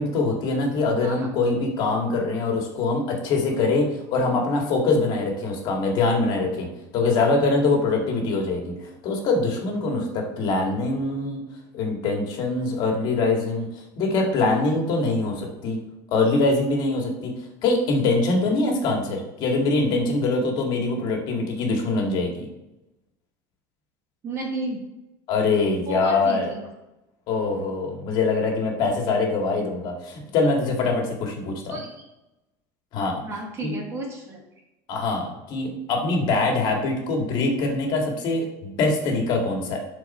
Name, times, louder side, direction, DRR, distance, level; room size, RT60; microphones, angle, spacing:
voice 1, 0.0-11.4 11.7-15.8 16.1-17.3 17.6-22.5 25.3-26.5 27.3-31.8 32.9-33.2 33.6-33.8 34.9-39.8, left 3 dB, 45° left, 1 dB, 2.1 m, -23 dB
voice 2, 24.2-24.8 25.9-26.7 31.7-31.9 33.2-34.4, right 2 dB, 25° right, 0 dB, 1.7 m, -32 dB
12.0 x 4.7 x 4.3 m, 0.95 s
cardioid pair, 160°, 10 cm